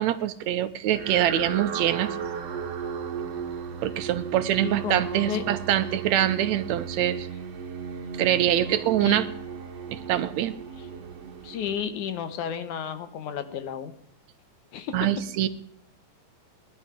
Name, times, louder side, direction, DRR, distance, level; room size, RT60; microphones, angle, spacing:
voice 1, 0.0-2.2 3.8-7.3 8.2-9.3 9.9-10.5 14.9-15.5, right 12 dB, 75° right, 11 dB, 1.7 m, -24 dB
sound 1, 0.9-12.3, right 6 dB, 55° right, 2.2 m, -35 dB
voice 2, 4.6-5.4 9.0-9.2 11.4-13.9 14.7-15.1, left 8 dB, 70° left, 10 dB, 2.4 m, -32 dB
19.0 x 11.5 x 5.1 m, 0.68 s
omnidirectional pair, 3.9 m